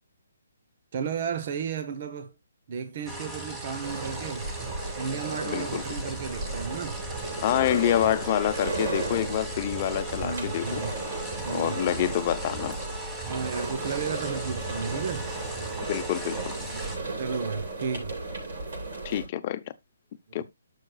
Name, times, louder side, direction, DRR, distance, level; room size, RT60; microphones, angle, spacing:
voice 1, 0.9-2.3 2.7-4.5 5.0-7.0 10.2-10.9 11.4-11.8 13.3-15.3 16.7-18.1, right 6 dB, 45° right, 1.1 m, -33 dB
sound 1, 3.1-17.0, right 2 dB, 10° right, 1.4 m, -38 dB
sound 2, 3.8-19.3, right 3 dB, 60° right, 6.5 m, -35 dB
voice 2, 5.5-5.8 7.4-10.8 11.5-12.8 15.9-16.4 19.0-19.6 20.3-20.4, left 12 dB, 35° left, 0.8 m, -27 dB
11.5 x 6.6 x 2.3 m
hypercardioid pair, 155°, 0 cm